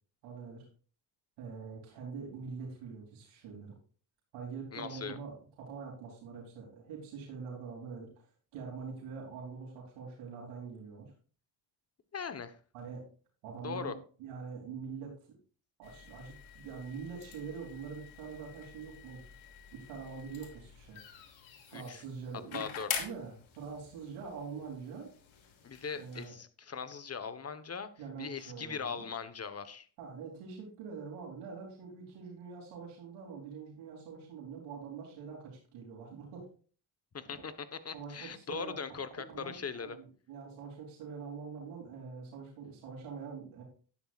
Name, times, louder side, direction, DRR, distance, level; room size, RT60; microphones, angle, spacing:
voice 1, 0.2-0.7 1.4-3.7 4.3-11.1 12.7-13.0 13.4-13.9 14.2-15.2 15.8-19.2 19.7-21.0 21.7-22.6 23.0-25.1 25.9-26.3 28.0-29.1 30.0-36.5 37.9-38.7 39.3-43.6, right 5 dB, 90° right, -3 dB, 3.4 m, -44 dB
voice 2, 4.7-5.2 12.1-12.6 13.6-13.9 21.7-22.0 22.5-22.9 25.6-27.9 28.2-29.9 37.1-40.0, left 6 dB, 30° left, 11 dB, 1.3 m, -40 dB
sound 1, 15.8-26.3, left 8 dB, 80° left, 2.9 m, -46 dB
12.0 x 10.5 x 2.5 m, 0.40 s
supercardioid pair, 80°, 48 cm